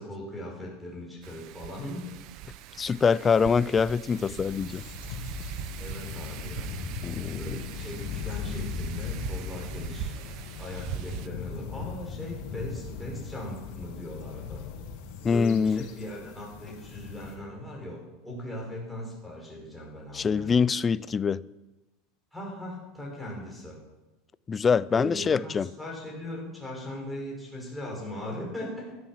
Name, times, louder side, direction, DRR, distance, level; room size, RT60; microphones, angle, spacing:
voice 1, 0.0-2.2 5.8-6.8 7.4-10.2 10.6-14.6 15.3-20.6 22.3-23.8 24.9-28.9, left 1 dB, ahead, 5.9 m, -39 dB
Wind, 1.2-11.3, right 10 dB, 50° right, 0.8 m, -41 dB
voice 2, 2.8-4.8 7.0-7.6 15.2-15.8 20.1-21.4 24.5-25.7, left 6 dB, 20° left, 0.4 m, -24 dB
sound 1, 4.1-17.4, left 6 dB, 65° left, 3.2 m, -38 dB
14.5 x 13.0 x 6.0 m
supercardioid pair, 140°, 0 cm